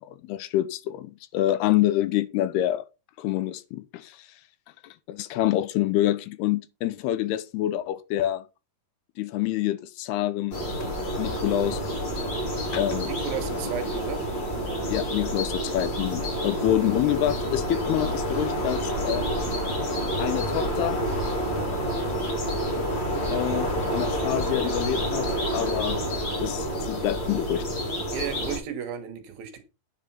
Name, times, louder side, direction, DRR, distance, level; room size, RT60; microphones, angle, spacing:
voice 1, 0.0-2.9 3.2-4.3 4.8-8.4 9.2-10.6 11.2-11.8 12.7-13.1 14.9-19.3 20.2-21.0 23.3-26.0 26.4-27.7, left 13 dB, 80° left, 2.6 m, -27 dB
sound 1, 10.5-28.6, equal, 30° left, 3.3 m, -28 dB
voice 2, 13.2-14.2 24.3-24.4 28.1-29.6, right 9 dB, 70° right, 2.9 m, -34 dB
10.0 x 5.4 x 5.8 m
omnidirectional pair, 4.8 m